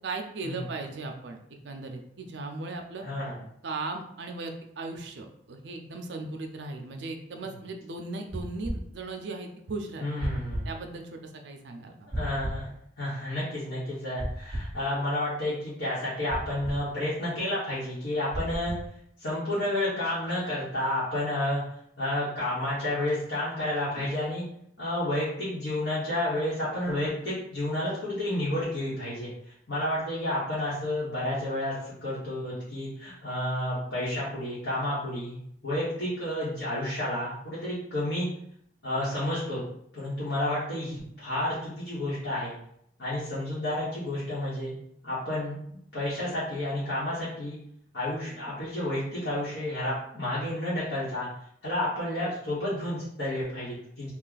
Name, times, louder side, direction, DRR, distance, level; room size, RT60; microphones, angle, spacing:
voice 1, 0.0-1.4 1.6-3.0 3.6-10.0 10.7-12.1, right 3 dB, 70° right, 4 dB, 0.5 m, -37 dB
voice 2, 3.0-3.4 10.0-10.7 12.1-12.7 13.0-18.8 19.2-21.6 22.0-24.4 24.8-29.3 29.7-31.7 32.0-38.3 38.8-39.6 39.9-42.5 43.0-44.7 45.0-45.6 45.9-47.6 47.9-51.3 51.6-54.1, left 1 dB, 80° left, -11 dB, 1.3 m, -30 dB
sound 1, 8.3-8.8 10.2-10.7 12.1-12.6 14.2-14.7 16.3-16.8 18.3-18.8, equal, 15° right, 0.5 m, -33 dB
3.1 x 2.4 x 3.9 m, 0.70 s
head